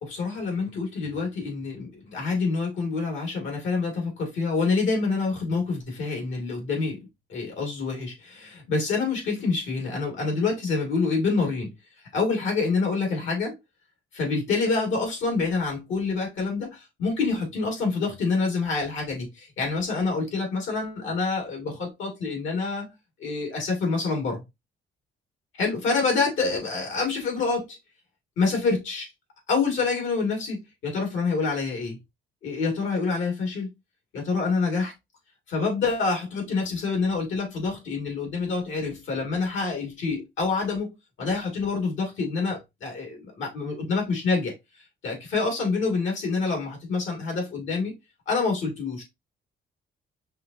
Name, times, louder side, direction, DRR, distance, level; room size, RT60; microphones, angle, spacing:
voice 1, 0.0-7.0 7.3-11.7 12.1-13.6 14.1-22.9 23.2-24.4 25.5-27.8 28.4-29.1 29.5-32.0 32.4-33.7 34.1-34.9 35.5-44.5 45.0-47.9 48.3-49.0, left 4 dB, 75° left, 2.4 m, -27 dB
5.4 x 2.9 x 2.7 m
cardioid pair, 90°, 20 cm